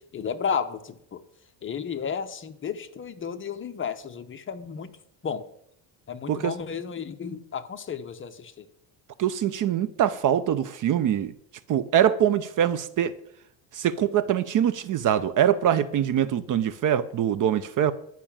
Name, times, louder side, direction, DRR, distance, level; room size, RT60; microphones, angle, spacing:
voice 1, 0.1-1.2 1.6-5.0 5.2-5.5 6.1-8.7, left 6 dB, 25° left, 0.9 m, -33 dB
voice 2, 9.2-11.3 11.7-13.1 13.7-17.9, right 10 dB, 45° right, 0.6 m, -23 dB
11.0 x 5.9 x 8.7 m
cardioid pair, 140°, 46 cm